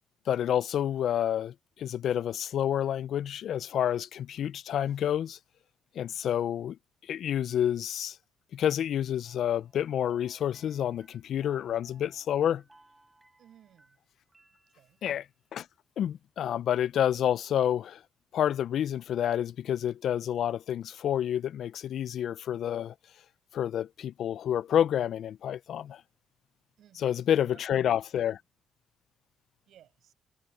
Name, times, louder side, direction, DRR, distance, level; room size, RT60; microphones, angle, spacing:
voice 1, 0.3-5.4 6.0-6.8 7.1-8.2 8.5-12.6 15.0-15.2 15.5-15.7 16.0-18.0 18.3-22.9 23.5-26.0 27.0-28.4, left 10 dB, 70° left, 0.4 m, -29 dB
sound 1, 9.2-15.3, right 2 dB, 15° right, 5.7 m, -62 dB
voice 2, 13.4-14.0 14.7-15.0 26.8-27.6 29.7-30.1, right 11 dB, 70° right, 7.2 m, -59 dB
cardioid pair, 90°, 0 cm